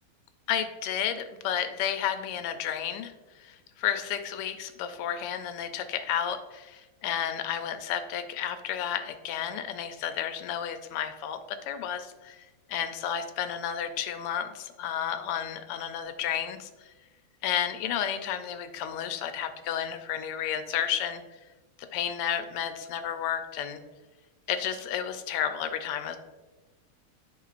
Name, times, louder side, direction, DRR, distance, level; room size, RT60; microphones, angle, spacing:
voice 1, 0.5-16.7 17.4-21.2 21.9-23.8 24.5-26.2, left 9 dB, 90° left, 9 dB, 1.6 m, -32 dB
11.0 x 4.5 x 2.5 m, 1.2 s
omnidirectional pair, 2.4 m